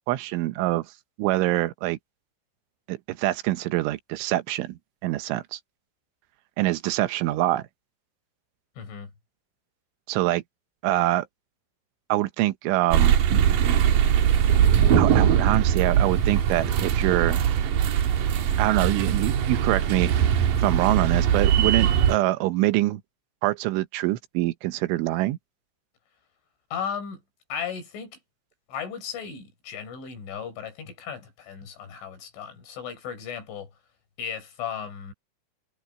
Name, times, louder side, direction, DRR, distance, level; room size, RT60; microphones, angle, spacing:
voice 1, 0.1-0.9 1.2-2.0 2.9-5.6 6.6-7.6 10.1-10.4 10.8-11.3 12.1-13.2 14.9-17.5 18.6-23.0 23.4-25.4, right 16 dB, 85° right, 3.4 m, -25 dB
voice 2, 8.8-9.1 26.7-27.2 27.5-28.2 28.7-33.7 34.2-35.1, left 7 dB, 80° left, 6.9 m, -35 dB
sound 1, 12.9-22.2, right 9 dB, 65° right, 2.4 m, -21 dB
sound 2, 13.2-20.9, left 1 dB, 10° left, 7.0 m, -41 dB
omnidirectional pair, 5.5 m